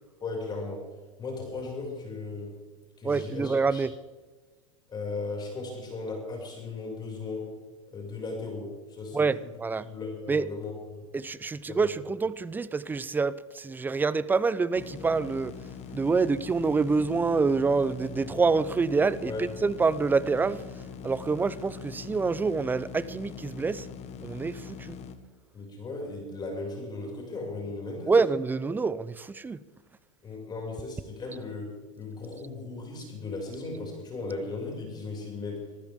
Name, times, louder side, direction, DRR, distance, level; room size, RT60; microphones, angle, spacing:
voice 1, 0.2-0.8 1.2-2.5 3.0-3.8 4.9-7.5 7.9-9.2 9.8-11.0 11.7-11.8 19.2-19.4 25.5-28.2 30.2-35.6, left 3 dB, 25° left, 6.4 m, -36 dB
voice 2, 3.0-3.9 9.1-9.9 10.3-10.4 11.1-15.5 15.9-20.6 21.0-23.9 24.2-25.0 28.1-29.6, right 4 dB, 10° right, 0.6 m, -26 dB
sound 1, 14.7-25.2, left 6 dB, 40° left, 1.6 m, -42 dB
25.0 x 15.0 x 3.7 m
hypercardioid pair, 110°, 17 cm